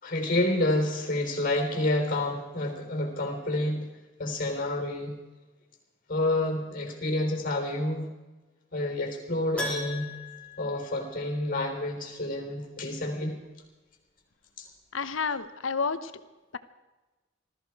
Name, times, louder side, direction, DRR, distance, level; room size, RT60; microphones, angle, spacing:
voice 1, 0.0-3.9 4.2-5.2 6.1-8.1 8.7-10.1 10.6-13.4 14.6-14.7, left 1 dB, 45° left, 5 dB, 3.7 m, -29 dB
Keyboard (musical), 9.6-11.6 11.9-12.0 14.7-14.8 15.0-15.1, left 1 dB, 5° left, 3.6 m, -38 dB
voice 2, 14.9-16.1, left 5 dB, 80° left, 12 dB, 1.0 m, -30 dB
20.5 x 14.0 x 4.8 m, 1.2 s
head